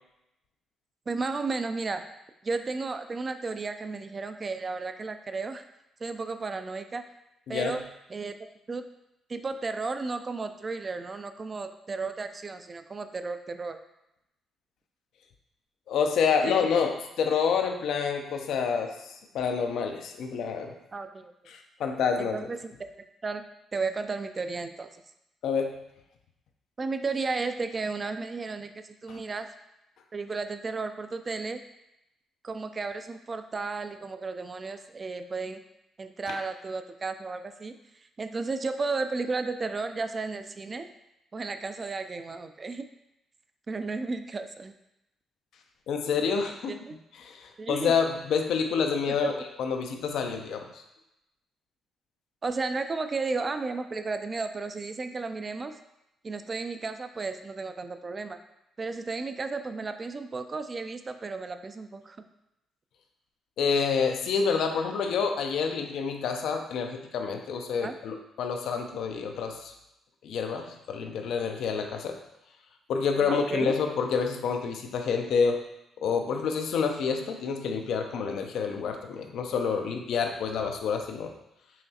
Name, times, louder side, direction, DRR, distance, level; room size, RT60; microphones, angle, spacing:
voice 1, 1.1-2.0 2.4-5.6 6.0-7.0 7.5-7.8 8.1-8.4 8.7-8.9 9.3-13.8 16.4-16.5 20.9-21.3 22.2-22.9 23.2-23.4 23.7-24.9 26.8-29.5 30.1-31.6 32.4-35.6 36.0-37.8 38.2-40.9 41.3-42.9 43.7-44.7 46.7-46.9 47.6-47.9 49.2-49.3 52.4-55.7 56.2-58.4 58.8-62.2 67.8-68.0 73.2-73.7, right 4 dB, 35° right, 9 dB, 0.3 m, -33 dB
voice 2, 15.9-16.9 17.2-20.7 21.5-22.3 25.4-25.8 29.1-29.2 36.3-36.4 45.9-46.8 47.2-49.3 49.6-50.8 63.6-69.7 70.2-72.2 72.9-75.6 76.0-81.3, left 6 dB, 75° left, 4 dB, 0.5 m, -28 dB
5.6 x 3.0 x 2.8 m, 0.88 s
cardioid pair, 90°, 0 cm